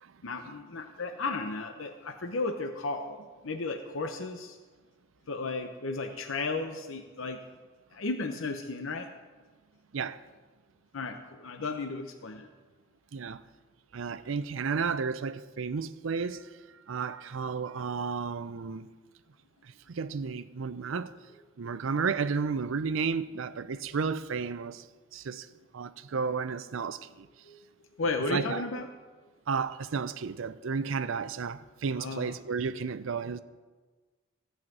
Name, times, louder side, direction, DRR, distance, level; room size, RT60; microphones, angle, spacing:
voice 1, 0.2-4.6 5.3-7.4 7.9-9.1 10.9-12.5 27.4-27.6 28.0-28.9 32.0-32.3, left 3 dB, 75° left, 0.8 m, -34 dB
voice 2, 13.1-13.4 13.9-16.5 16.9-18.9 19.9-21.1 21.6-24.8 25.1-25.5 25.7-27.3 28.3-28.6 29.5-33.4, right 5 dB, 75° right, 0.5 m, -32 dB
14.5 x 5.7 x 7.6 m
head